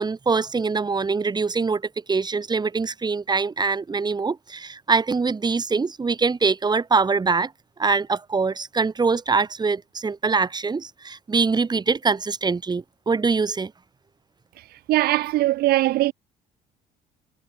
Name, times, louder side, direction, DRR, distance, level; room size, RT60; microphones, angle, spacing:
voice 1, 0.0-1.8 2.1-7.5 7.8-13.7, right 4 dB, 25° right, 4.0 m, -23 dB
voice 2, 14.6-16.1, right 16 dB, 65° right, 0.5 m, -21 dB
cardioid pair, 110°, 17 cm